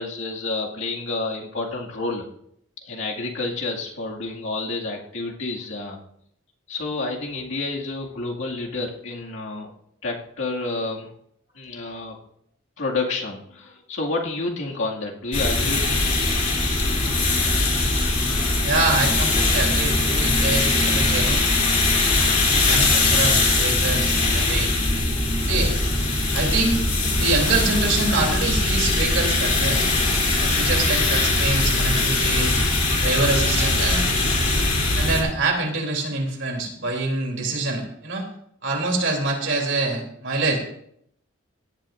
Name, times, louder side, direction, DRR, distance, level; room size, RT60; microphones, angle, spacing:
voice 1, 0.0-2.3 2.8-6.0 6.7-9.7 10.0-11.1 11.5-12.2 12.8-16.1 17.3-17.5, left 3 dB, 70° left, -2 dB, 2.1 m, -29 dB
sound 1, 15.3-35.2, left 2 dB, 40° left, 2.9 m, -21 dB
voice 2, 18.6-21.4 22.5-24.7 25.5-25.7 26.3-26.8 27.2-29.8 30.4-32.5 32.9-34.1 34.9-38.3 38.6-40.6, right 3 dB, 70° right, 1 dB, 3.2 m, -25 dB
17.0 x 11.5 x 2.6 m, 0.71 s
head